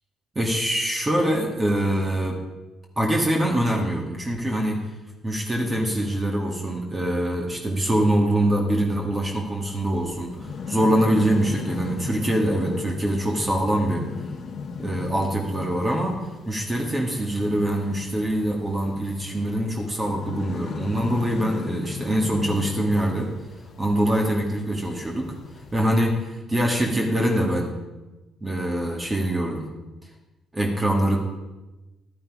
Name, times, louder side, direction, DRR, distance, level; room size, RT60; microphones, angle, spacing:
voice 1, 0.4-2.4 3.0-4.9 5.2-14.1 14.8-23.3 23.8-25.3 25.7-27.7 28.4-29.7 30.5-31.2, right 1 dB, 20° right, 0 dB, 2.0 m, -24 dB
sound 1, 9.6-26.0, left 5 dB, 60° left, 1.3 m, -37 dB
12.5 x 9.2 x 4.9 m, 1.1 s
cardioid pair, 85°, 0 cm